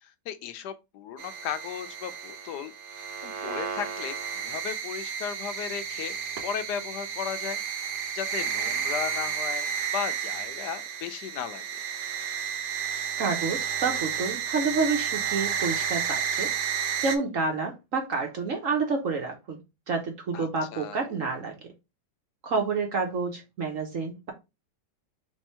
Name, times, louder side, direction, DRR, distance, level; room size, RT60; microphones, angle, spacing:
voice 1, 0.0-7.6 8.1-11.6 20.3-21.1, left 8 dB, 80° left, 1.2 m, -36 dB
sound 1, 1.2-17.2, right 7 dB, 75° right, 1.3 m, -32 dB
voice 2, 13.2-16.5 17.0-19.6 19.9-21.6 22.4-24.3, right 4 dB, 55° right, 1.1 m, -29 dB
3.5 x 3.4 x 4.2 m
omnidirectional pair, 1.8 m